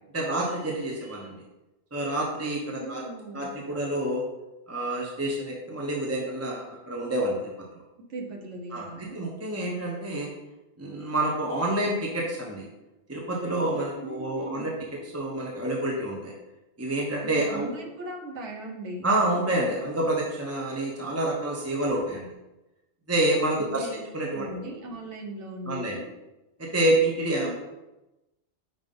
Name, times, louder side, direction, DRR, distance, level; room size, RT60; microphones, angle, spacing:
voice 1, 0.1-1.4 1.9-3.0 3.3-4.2 4.7-7.4 8.7-10.3 10.8-12.7 13.1-14.7 15.1-16.3 16.8-17.7 19.0-22.3 23.1-24.5 25.7-26.0 26.6-27.5, right 1 dB, 15° right, -2 dB, 0.7 m, -28 dB
voice 2, 2.8-3.6 8.1-9.2 14.0-14.7 17.2-19.1 23.6-24.0 24.3-26.1 27.4-27.5, right 1 dB, 80° right, 0 dB, 1.4 m, -38 dB
5.2 x 3.6 x 5.3 m, 1.0 s
omnidirectional pair, 1.2 m